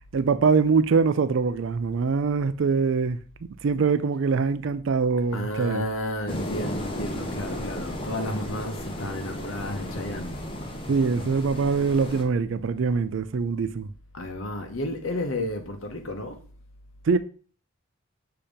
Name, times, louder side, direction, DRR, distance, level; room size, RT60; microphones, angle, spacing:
voice 1, 0.1-3.2 3.6-5.9 10.9-13.9 17.0-17.2, right 5 dB, 65° right, 0.4 m, -23 dB
voice 2, 5.3-10.5 14.1-16.5, left 1 dB, 75° left, 0.9 m, -32 dB
sound 1, 6.3-12.2, equal, 25° left, 0.8 m, -34 dB
7.0 x 2.9 x 5.0 m
head